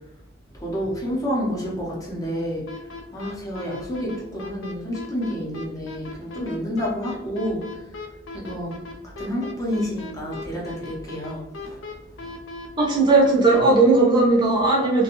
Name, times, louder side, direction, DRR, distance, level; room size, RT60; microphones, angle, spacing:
voice 1, 0.5-7.6 8.3-8.7 9.0-12.4, equal, 20° left, -3 dB, 0.6 m, -29 dB
sound 1, 2.7-13.6, left 3 dB, 85° left, 0.5 m, -37 dB
voice 2, 12.8-15.0, right 3 dB, 25° right, -3 dB, 0.5 m, -17 dB
2.5 x 2.2 x 2.9 m, 0.90 s
head